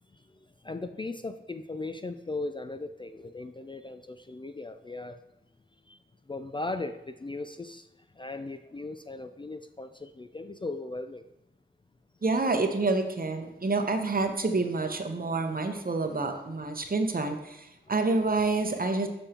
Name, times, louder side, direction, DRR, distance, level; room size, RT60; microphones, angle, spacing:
voice 1, 0.6-5.2 5.9-6.0 6.3-7.9 8.2-11.2 17.9-18.0, left 2 dB, 25° left, 9 dB, 0.3 m, -37 dB
voice 2, 12.2-19.1, right 3 dB, 45° right, 6 dB, 0.8 m, -28 dB
6.8 x 5.2 x 2.9 m, 0.86 s
cardioid pair, 45°, 21 cm